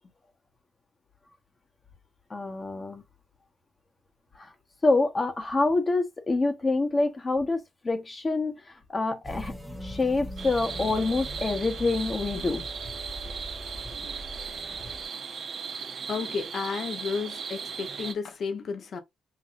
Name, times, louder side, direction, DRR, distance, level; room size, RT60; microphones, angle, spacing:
voice 1, 2.3-3.0 4.3-4.5 4.8-9.5 9.8-12.7, left 3 dB, 25° left, 1.2 m, -26 dB
sound 1, 9.2-15.0, equal, 5° left, 1.1 m, -40 dB
sound 2, 10.4-18.1, right 6 dB, 50° right, 1.0 m, -37 dB
voice 2, 16.1-19.0, left 5 dB, 55° left, 1.1 m, -32 dB
5.9 x 2.6 x 2.6 m
cardioid pair, 90°, 0 cm